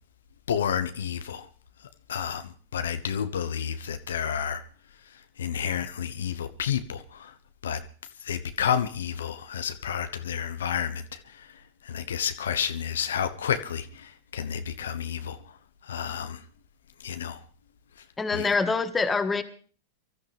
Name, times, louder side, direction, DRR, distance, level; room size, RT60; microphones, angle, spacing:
voice 1, 0.5-1.5 2.1-4.6 5.4-7.3 7.6-7.8 8.2-15.4 15.8-16.4 17.0-17.4 18.3-18.6, left 8 dB, 80° left, 1.0 m, -30 dB
voice 2, 18.2-19.4, left 4 dB, 15° left, 1.7 m, -25 dB
24.0 x 13.0 x 3.4 m
hypercardioid pair, 100°, 0 cm